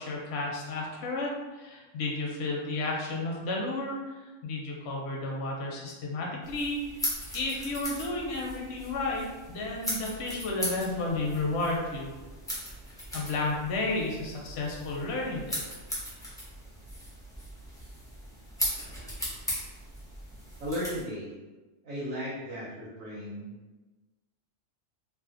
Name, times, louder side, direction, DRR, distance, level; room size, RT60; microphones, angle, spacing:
voice 1, 0.0-7.1 7.3-12.1 13.1-15.6, left 2 dB, 65° left, -2 dB, 0.8 m, -32 dB
sound 1, 6.4-21.0, equal, 5° left, 0.3 m, -38 dB
voice 2, 20.6-21.4 21.8-23.5, equal, 85° right, -9 dB, 1.2 m, -35 dB
2.5 x 2.4 x 2.4 m, 1.2 s
omnidirectional pair, 1.4 m